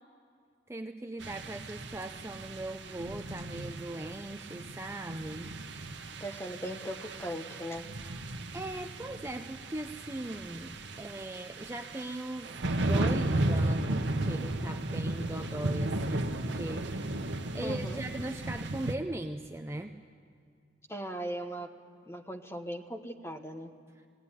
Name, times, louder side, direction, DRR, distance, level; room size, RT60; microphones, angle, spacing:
voice 1, 0.7-5.5 8.5-10.7 11.0-12.6 12.9-17.2 17.5-19.9, right 1 dB, 15° right, 5 dB, 0.5 m, -39 dB
sound 1, 1.2-18.9, right 1 dB, 75° right, 1.0 m, -35 dB
voice 2, 6.2-7.9 17.6-18.0 20.9-21.7 22.0-23.7, equal, 15° left, 4 dB, 1.1 m, -39 dB
19.0 x 17.0 x 9.9 m, 2.3 s
head